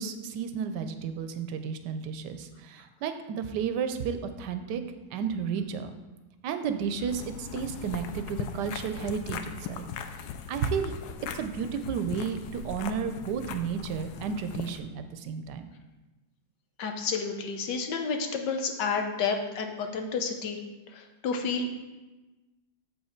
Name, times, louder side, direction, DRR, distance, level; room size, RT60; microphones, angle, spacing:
voice 1, 0.0-4.8 5.1-5.9 6.4-9.9 10.5-10.9 11.3-15.7, right 6 dB, 85° right, 9 dB, 1.2 m, -32 dB
sound 1, 7.1-14.8, left 7 dB, 75° left, 1.1 m, -39 dB
voice 2, 16.8-20.6 20.9-21.7, left 5 dB, 90° left, 4 dB, 1.5 m, -30 dB
7.1 x 5.5 x 4.4 m, 1.1 s
omnidirectional pair, 1.8 m